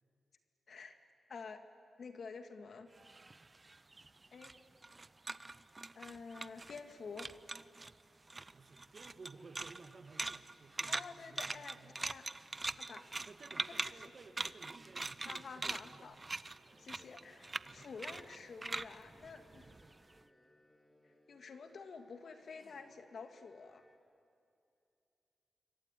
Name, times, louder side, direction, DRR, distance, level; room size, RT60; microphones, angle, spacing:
voice 1, 0.7-1.0 1.3-1.6 2.0-2.9 4.3-4.5 6.0-7.3 10.9-13.2 13.7-14.1 15.2-16.2 16.8-19.7 21.0-23.8, left 5 dB, 65° left, 7 dB, 2.1 m, -50 dB
sound 1, 3.0-6.9 7.2-7.9 8.3-20.1, right 3 dB, 30° right, 0.6 m, -43 dB
voice 2, 8.5-12.0 12.7-12.8 13.3-16.4 16.7-17.0 17.7-17.9 19.5-19.7, right 4 dB, 55° right, 8 dB, 1.9 m, -57 dB
sound 2, 16.7-24.0, left 1 dB, 5° left, 3.4 m, -68 dB
26.5 x 22.5 x 9.9 m, 2.5 s
cardioid pair, 75°, 0 cm